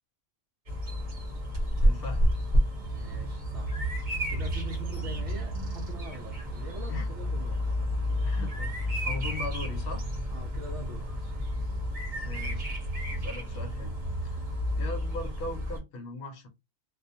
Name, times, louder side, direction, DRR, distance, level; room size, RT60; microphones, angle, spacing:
Bird vocalization bird call bird song, 0.7-15.8, equal, 40° right, 1.0 m, -30 dB
voice 1, 1.8-2.2 6.9-7.1 8.2-10.0 12.2-12.7 13.2-13.9 14.2-14.4 14.8-16.5, left 2 dB, 55° left, 0.8 m, -39 dB
voice 2, 2.9-3.8 4.3-7.6 10.3-11.1, right 1 dB, 70° right, 0.9 m, -43 dB
2.3 x 2.2 x 2.7 m
omnidirectional pair, 1.3 m